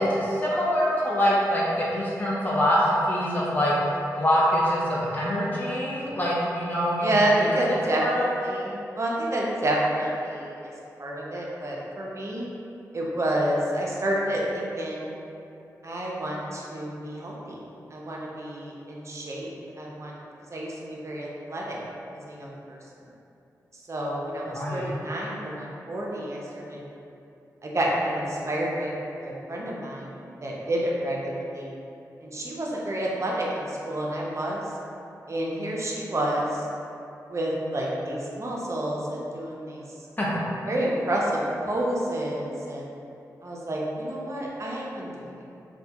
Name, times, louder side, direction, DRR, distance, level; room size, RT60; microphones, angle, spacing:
voice 1, 0.0-2.8 3.1-3.7 4.1-8.3 24.5-24.9 40.2-40.3, equal, 25° left, -7 dB, 0.6 m, -25 dB
voice 2, 7.0-10.7 11.0-12.5 12.9-15.1 15.8-17.6 17.9-19.5 19.8-20.1 20.5-21.8 22.2-22.8 23.9-26.8 27.6-28.9 29.2-31.7 32.2-34.7 35.3-36.6 37.3-39.8 40.7-42.9 43.4-45.4, right 1 dB, 45° right, -4 dB, 0.5 m, -29 dB
2.2 x 2.2 x 2.8 m, 2.7 s
cardioid pair, 45°, 7 cm